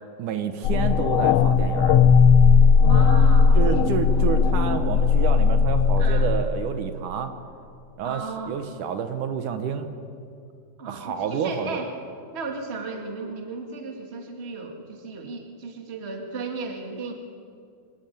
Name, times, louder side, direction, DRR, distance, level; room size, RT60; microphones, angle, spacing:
voice 1, 0.2-2.0 3.5-7.3 8.0-9.9 10.9-11.8, right 7 dB, 70° right, 8 dB, 2.5 m, -29 dB
sound 1, 0.6-6.4, left 5 dB, 85° left, 1.3 m, -17 dB
voice 2, 2.8-4.4 6.0-6.3 8.0-8.6 10.8-11.9 12.3-17.1, right 4 dB, 25° right, 3 dB, 1.9 m, -35 dB
25.0 x 16.0 x 9.3 m, 2.4 s
omnidirectional pair, 3.9 m